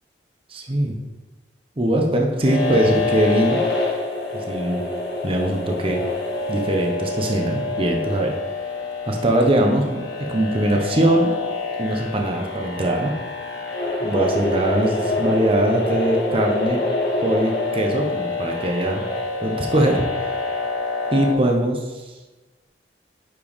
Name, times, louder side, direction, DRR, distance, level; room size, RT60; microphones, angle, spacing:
voice 1, 0.5-0.9 1.8-3.6 4.5-4.8 5.2-6.0 6.5-8.3 9.1-11.3 11.8-13.1 14.0-16.8 17.2-19.0 19.4-20.4 21.1-22.0, right 1 dB, 30° right, 1 dB, 0.9 m, -21 dB
sound 1, 2.4-21.3, left 3 dB, 65° left, 1.8 m, -26 dB
9.8 x 4.5 x 3.6 m, 1.2 s
head